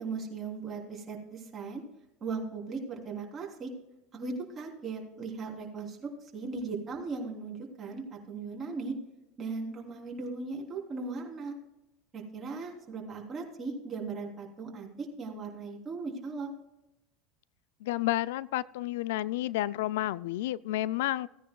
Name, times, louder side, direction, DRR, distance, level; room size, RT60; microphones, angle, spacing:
voice 1, 0.0-1.8 2.2-3.7 4.1-8.9 9.4-11.5 12.1-16.5, right 4 dB, 30° right, 0 dB, 3.2 m, -38 dB
voice 2, 17.8-21.3, left 15 dB, 80° left, 20 dB, 0.3 m, -31 dB
17.0 x 10.0 x 2.3 m, 0.90 s
supercardioid pair, 110°, 0 cm